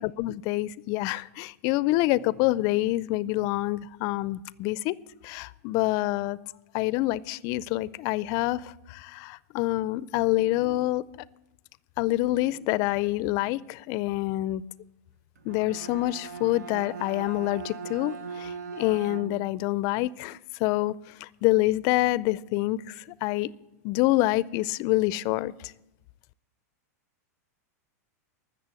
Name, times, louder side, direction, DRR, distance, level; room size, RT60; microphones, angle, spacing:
voice 1, 0.0-4.9 5.2-6.4 6.7-11.0 12.0-14.6 15.5-20.9 21.2-23.5 23.8-25.7, left 18 dB, 45° left, 21 dB, 0.4 m, -27 dB
Bowed string instrument, 15.4-19.7, right 5 dB, 90° right, 0.8 m, -40 dB
14.5 x 6.7 x 7.6 m, 0.95 s
hypercardioid pair, 125°, 9 cm